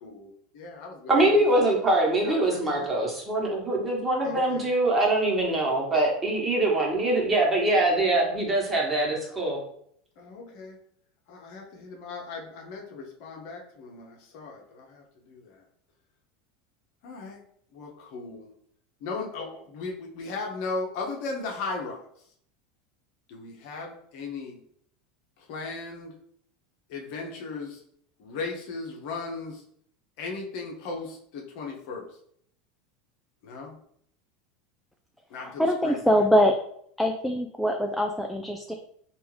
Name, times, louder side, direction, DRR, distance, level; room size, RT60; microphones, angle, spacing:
voice 1, 0.0-1.7 2.2-3.1 4.2-4.7 10.2-10.8 11.3-15.5 17.0-17.4 17.7-18.5 19.0-22.0 23.3-24.6 25.5-26.1 26.9-27.8 28.2-29.6 30.2-32.1 33.4-33.8 35.3-36.2, left 3 dB, 60° left, 0 dB, 0.8 m, -37 dB
voice 2, 1.1-9.6, right 2 dB, 20° right, -2 dB, 1.4 m, -23 dB
voice 3, 35.4-36.6 37.0-38.7, equal, 5° left, 3 dB, 0.4 m, -23 dB
3.4 x 2.6 x 3.2 m, 0.67 s
hypercardioid pair, 80°, 0 cm